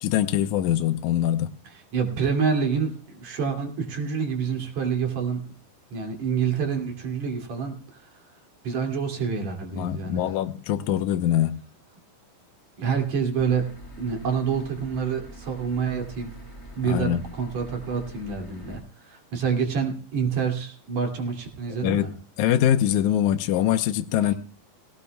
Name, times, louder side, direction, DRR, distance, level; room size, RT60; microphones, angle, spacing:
voice 1, 0.0-1.5 9.7-11.6 16.8-17.2 21.8-22.1 22.4-24.3, left 11 dB, 75° left, 1.8 m, -23 dB
voice 2, 1.9-5.4 5.9-7.8 8.6-10.3 12.8-13.7 14.0-16.3 16.8-22.1 24.2-24.3, right 6 dB, 50° right, 3.6 m, -27 dB
sound 1, 13.4-18.8, equal, 10° left, 1.1 m, -44 dB
18.5 x 17.5 x 2.3 m
omnidirectional pair, 4.2 m